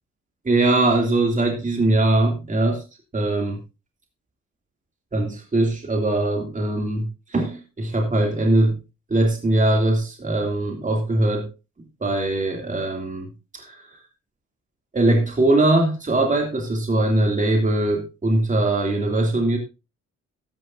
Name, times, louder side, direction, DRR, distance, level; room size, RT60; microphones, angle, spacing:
voice 1, 0.4-2.8 3.1-3.6 5.1-8.8 9.1-11.5 12.0-14.0 14.9-19.6, right 2 dB, 25° right, 2 dB, 2.8 m, -21 dB
13.5 x 11.0 x 2.7 m, 0.28 s
cardioid pair, 90°, 30 cm